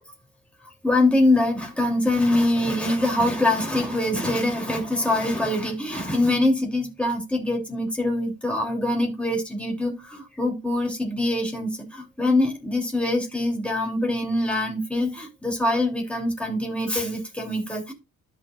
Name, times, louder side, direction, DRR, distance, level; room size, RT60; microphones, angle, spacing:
voice 1, 0.8-17.9, left 1 dB, 5° left, 3.0 m, -24 dB
13.0 x 6.0 x 2.4 m
wide cardioid pair, 150°, 32 cm